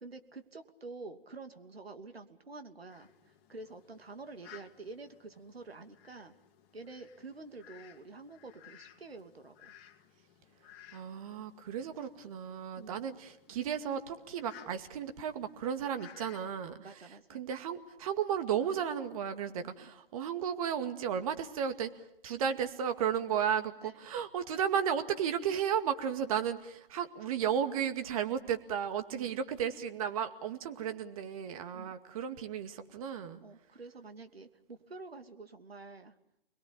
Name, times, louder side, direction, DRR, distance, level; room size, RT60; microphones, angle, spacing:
voice 1, 0.0-6.3 6.7-9.7 12.8-13.2 16.8-17.4 19.5-19.7 23.8-23.9 29.1-29.4 31.7-31.9 33.4-36.2, right 3 dB, 90° right, 8 dB, 2.8 m, -48 dB
Fowl, 2.9-16.6, left 10 dB, 25° left, 2.5 m, -58 dB
voice 2, 10.9-33.4, right 8 dB, 35° right, 8 dB, 2.2 m, -34 dB
29.0 x 22.0 x 8.8 m, 0.78 s
hypercardioid pair, 145°, 30 cm